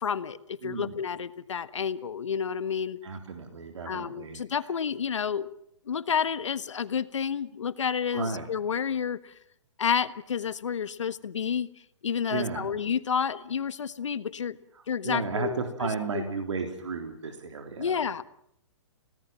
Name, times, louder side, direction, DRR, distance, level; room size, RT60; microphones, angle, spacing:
voice 1, 0.0-3.0 3.9-5.5 5.9-9.3 9.8-11.7 12.0-14.6 14.9-15.6 16.1-16.2 17.8-18.2, left 7 dB, 80° left, 13 dB, 1.5 m, -30 dB
voice 2, 0.6-1.0 3.0-4.4 8.1-8.5 12.3-12.7 14.8-18.0, right 4 dB, 75° right, 5 dB, 3.6 m, -34 dB
28.5 x 18.0 x 7.5 m, 0.72 s
hypercardioid pair, 140°, 15 cm